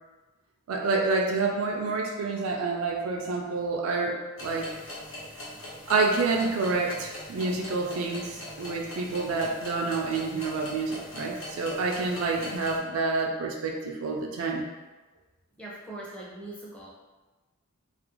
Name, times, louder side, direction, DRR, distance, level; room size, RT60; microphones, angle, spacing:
voice 1, 0.7-4.7 5.9-14.7, right 3 dB, 80° right, 1 dB, 0.4 m, -28 dB
sound 1, 4.4-12.8, left 1 dB, 70° left, 0.9 m, -41 dB
voice 2, 15.6-16.9, right 2 dB, 5° left, -5 dB, 0.5 m, -41 dB
2.4 x 2.3 x 2.9 m, 1.2 s
head